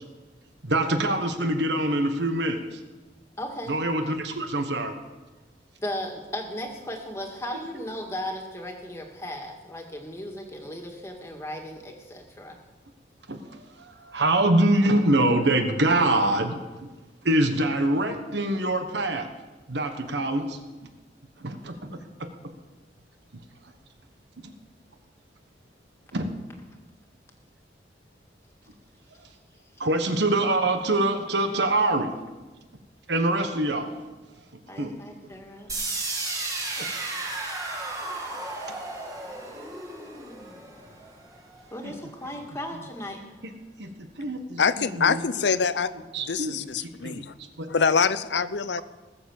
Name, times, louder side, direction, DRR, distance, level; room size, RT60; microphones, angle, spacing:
voice 1, 0.6-2.6 3.7-4.9 7.7-7.8 13.3-13.4 14.1-16.6 17.2-19.3 19.7-20.5 21.4-21.9 26.1-26.3 29.8-32.1 33.1-33.9 34.8-34.9 41.8-41.9 43.8-43.9 44.2-45.2 46.1-47.2, right 1 dB, 80° right, 6 dB, 1.4 m, -24 dB
voice 2, 3.4-3.7 5.8-12.6 34.7-35.7 41.7-43.2, left 1 dB, 15° left, 2 dB, 1.9 m, -36 dB
sound 1, 35.7-41.6, right 2 dB, 20° right, 2.0 m, -34 dB
voice 3, 44.6-45.9 46.3-47.2 47.7-48.8, left 5 dB, 80° left, 15 dB, 0.6 m, -24 dB
19.5 x 7.2 x 7.3 m, 1.2 s
head